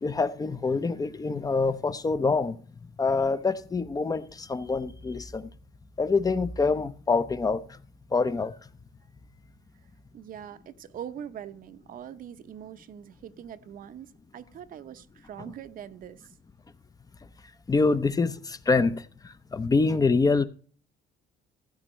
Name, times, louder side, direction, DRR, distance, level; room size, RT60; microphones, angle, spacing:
voice 1, 0.0-2.6 3.0-5.5 6.0-7.8 8.1-8.6 17.7-20.5, left 4 dB, 20° left, 0.7 m, -25 dB
voice 2, 10.1-16.3, right 9 dB, 55° right, 0.8 m, -42 dB
15.5 x 8.9 x 3.2 m
cardioid pair, 110°, 17 cm